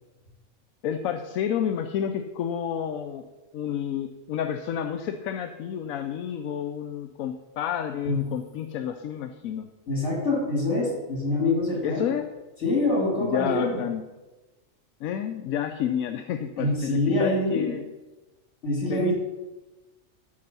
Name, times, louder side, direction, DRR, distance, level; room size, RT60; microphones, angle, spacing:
voice 1, 0.8-3.2 3.5-9.7 11.8-12.3 13.2-14.0 15.0-17.8 18.9-19.1, left 9 dB, 85° left, 6 dB, 1.0 m, -30 dB
voice 2, 9.9-12.1 12.6-13.8 16.6-17.8 18.6-19.1, left 2 dB, 60° left, -2 dB, 3.5 m, -25 dB
12.5 x 4.8 x 5.4 m, 1.1 s
omnidirectional pair, 1.4 m